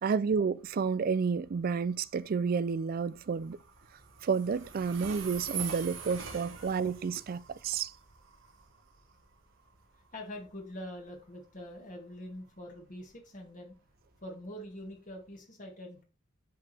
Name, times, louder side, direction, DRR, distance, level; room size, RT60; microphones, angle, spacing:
voice 1, 0.0-3.6 4.2-7.9, right 5 dB, 45° right, 0.4 m, -30 dB
Train, 0.6-15.3, right 7 dB, 75° right, 1.5 m, -46 dB
voice 2, 10.1-13.7 14.2-16.0, left 1 dB, 40° left, 2.1 m, -44 dB
10.5 x 4.8 x 3.4 m
head